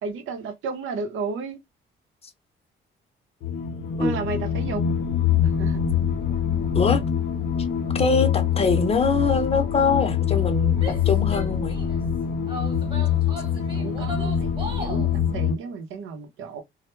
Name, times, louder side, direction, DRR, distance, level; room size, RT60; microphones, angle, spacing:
voice 1, 0.0-1.6 4.0-4.8 5.4-5.8 13.7-16.6, right 4 dB, 80° right, 0.6 m, -33 dB
sound 1, 3.4-15.6, left 8 dB, 80° left, 0.6 m, -24 dB
voice 2, 7.9-10.8 11.1-11.7, left 4 dB, 30° left, 0.6 m, -23 dB
Female speech woman speaking / Yell, 10.7-12.0 12.5-15.1, equal, 25° right, 0.9 m, -37 dB
2.2 x 2.1 x 2.9 m
cardioid pair, 90°, 20 cm